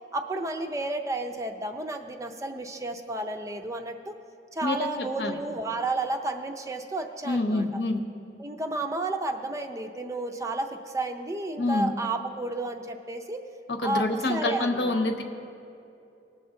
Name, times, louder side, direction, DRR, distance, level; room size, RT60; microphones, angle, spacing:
voice 1, 0.1-4.1 4.5-7.7 8.4-13.4 13.8-15.1, right 2 dB, 15° right, 5 dB, 0.5 m, -32 dB
voice 2, 4.6-5.4 7.2-8.0 11.6-11.9 13.7-15.2, left 2 dB, 70° left, 5 dB, 1.0 m, -27 dB
19.5 x 6.9 x 3.7 m, 2.7 s
head